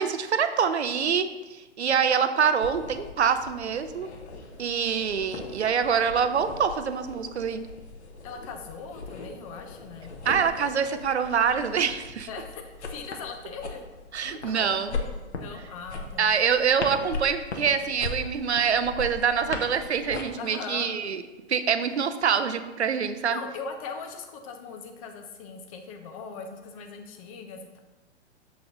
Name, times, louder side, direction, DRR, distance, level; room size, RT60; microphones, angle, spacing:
voice 1, 0.0-4.1 4.6-7.6 10.3-12.3 14.1-15.0 16.2-21.2 21.5-23.4, right 7 dB, 70° right, 10 dB, 0.5 m, -25 dB
sound 1, 2.6-20.2, left 3 dB, 70° left, 1.0 m, -39 dB
voice 2, 8.2-10.1 12.3-13.8 14.2-16.4 20.4-20.9 23.3-27.8, left 5 dB, 30° left, 5 dB, 0.7 m, -40 dB
6.4 x 4.0 x 3.9 m, 1.2 s
figure-of-eight pair, 110°, 35 cm